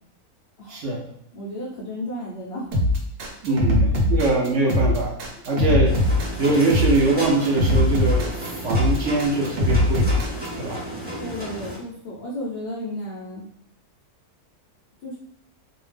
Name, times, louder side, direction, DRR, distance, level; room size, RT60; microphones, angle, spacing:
voice 1, 0.7-1.0 3.4-5.2 5.5-6.0 6.4-10.1 10.5-10.8, right 2 dB, 65° right, -2 dB, 0.8 m, -22 dB
voice 2, 1.3-2.8 3.5-4.0 11.2-13.5 15.0-15.2, left 1 dB, 70° left, -5 dB, 0.5 m, -34 dB
sound 1, 2.7-10.5, left 1 dB, 85° right, 1.2 m, -21 dB
sound 2, 5.8-11.8, equal, 15° right, 0.4 m, -33 dB
2.7 x 2.0 x 3.2 m, 0.71 s
omnidirectional pair, 1.6 m